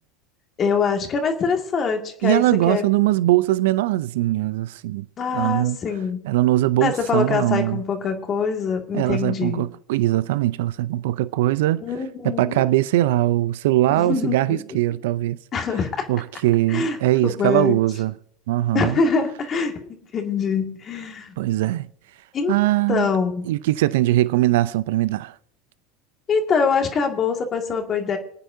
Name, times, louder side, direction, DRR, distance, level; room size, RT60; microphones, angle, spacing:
voice 1, 0.6-2.8 5.2-6.2 6.8-9.6 11.8-12.6 13.9-14.6 15.5-16.1 16.7-17.0 17.2-17.8 18.7-21.3 22.3-22.5 22.9-23.5 26.3-28.2, left 5 dB, 35° left, 2.1 m, -24 dB
voice 2, 2.2-5.0 5.3-5.8 6.2-7.8 8.9-11.8 12.2-15.4 16.1-18.1 18.5-19.0 21.4-21.9 22.5-23.1 23.5-25.3, right 15 dB, 70° right, 0.5 m, -21 dB
27.5 x 9.3 x 2.7 m
hypercardioid pair, 85°, 0 cm